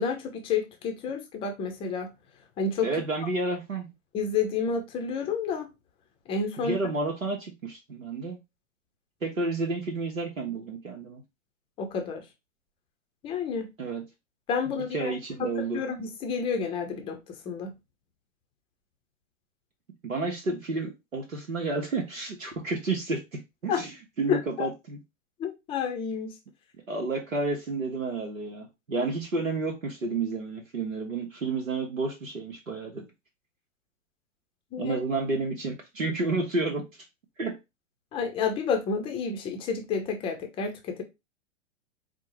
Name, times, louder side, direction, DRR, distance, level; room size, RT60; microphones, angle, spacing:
voice 1, 0.0-2.1 2.6-2.9 4.1-5.7 6.3-6.8 11.8-12.2 13.2-13.7 14.5-15.1 15.4-15.5 15.7-17.2 17.5-17.7 23.7-23.8 24.3-24.7 25.4-26.3 34.7-34.9 38.1-41.0, left 5 dB, 15° left, 0.5 m, -30 dB
voice 2, 2.8-3.9 6.6-8.4 9.2-11.2 13.8-14.0 14.7-15.8 20.0-25.0 26.9-33.0 34.8-36.8 37.4-37.6, right 3 dB, 85° right, 0.8 m, -31 dB
4.3 x 2.0 x 3.0 m
figure-of-eight pair, 105°, 39 cm